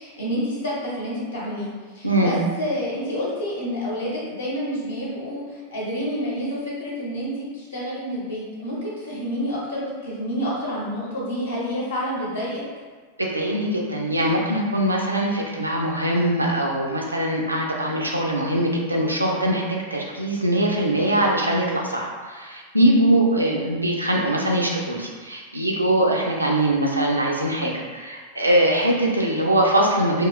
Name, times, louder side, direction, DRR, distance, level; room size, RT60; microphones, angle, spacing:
voice 1, 0.0-12.6, equal, 70° left, -6 dB, 0.8 m, -29 dB
voice 2, 2.0-2.4 13.2-30.3, right 1 dB, 85° right, -1 dB, 0.4 m, -22 dB
2.9 x 2.3 x 2.3 m, 1.4 s
figure-of-eight pair, 90°, 0 cm